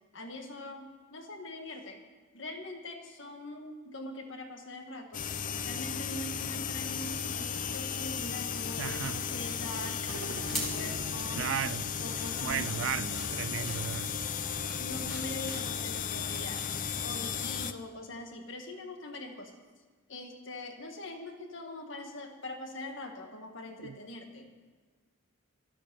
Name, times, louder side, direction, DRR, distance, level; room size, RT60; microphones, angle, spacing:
voice 1, 0.1-2.0 2.3-5.2 5.6-10.0 10.5-11.6 12.0-13.3 14.8-16.7 17.0-19.6 20.1-24.5, left 1 dB, 60° left, 1.7 m, -43 dB
sound 1, 5.1-17.7, left 7 dB, 40° left, 0.6 m, -35 dB
voice 2, 8.8-9.2 11.4-11.8 12.4-14.1 23.8-24.0, right 9 dB, 60° right, 0.3 m, -35 dB
sound 2, 9.9-16.8, right 1 dB, ahead, 2.2 m, -45 dB
sound 3, 10.0-15.3, right 1 dB, 80° right, 1.4 m, -47 dB
12.5 x 11.5 x 6.9 m
head